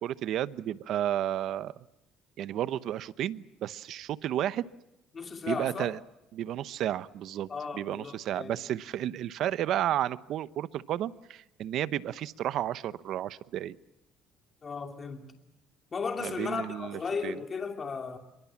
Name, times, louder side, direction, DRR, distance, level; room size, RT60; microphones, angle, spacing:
voice 1, 0.0-1.7 2.4-4.7 5.5-6.0 6.3-7.5 7.7-13.8 16.2-17.4, right 11 dB, 60° right, 16 dB, 0.9 m, -32 dB
voice 2, 5.1-5.9 7.5-8.6 14.6-15.3 15.9-18.2, left 5 dB, 30° left, 5 dB, 2.7 m, -35 dB
26.0 x 23.5 x 7.3 m, 0.86 s
cardioid pair, 120°, 0 cm